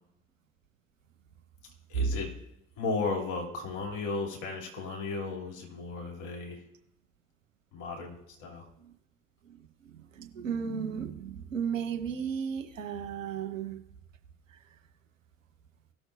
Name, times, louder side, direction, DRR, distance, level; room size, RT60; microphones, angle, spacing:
voice 1, 1.9-2.3 2.8-6.6 7.7-8.7, left 4 dB, 50° left, 1 dB, 3.0 m, -35 dB
voice 2, 9.4-13.8 14.5-14.6, right 7 dB, 80° right, 5 dB, 1.1 m, -35 dB
18.0 x 6.3 x 2.6 m, 0.80 s
figure-of-eight pair, 65°, 38 cm